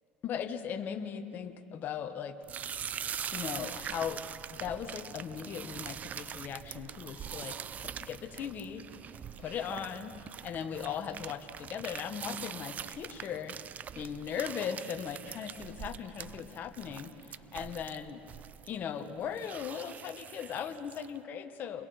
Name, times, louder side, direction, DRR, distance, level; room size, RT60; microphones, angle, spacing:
voice 1, 0.2-2.4 3.3-4.2 4.5-8.8 9.4-10.2 10.4-13.6 13.9-18.2 18.7-21.9, left 8 dB, 45° left, 7 dB, 1.4 m, -38 dB
sound 1, 2.4-21.2, right 8 dB, 40° right, 0.5 m, -43 dB
29.0 x 22.0 x 4.4 m, 2.5 s
supercardioid pair, 105°, 4 cm